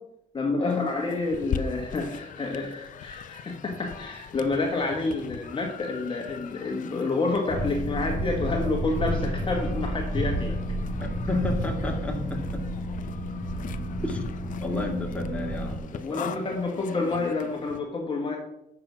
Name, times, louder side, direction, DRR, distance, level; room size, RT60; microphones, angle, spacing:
voice 1, 0.3-10.6 16.0-18.4, left 3 dB, 35° left, 1 dB, 1.4 m, -29 dB
sound 1, 0.7-17.8, left 7 dB, 55° left, 0.6 m, -41 dB
sound 2, 7.5-15.8, equal, 65° right, 2.6 m, -31 dB
voice 2, 11.3-12.6 14.0-14.2 14.6-16.4, left 2 dB, 10° left, 0 dB, 2.2 m, -31 dB
7.6 x 5.9 x 6.1 m, 0.83 s
cardioid pair, 95°, 16 cm